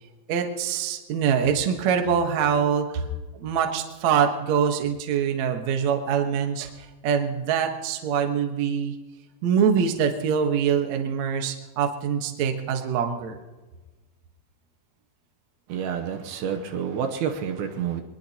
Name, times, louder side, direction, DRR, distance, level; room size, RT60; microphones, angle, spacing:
voice 1, 0.3-3.1 3.3-9.0 9.4-13.4, right 7 dB, 60° right, 4 dB, 2.1 m, -24 dB
voice 2, 15.7-18.0, right 7 dB, 75° right, 4 dB, 2.6 m, -29 dB
24.0 x 20.5 x 2.9 m, 1.2 s
omnidirectional pair, 4.6 m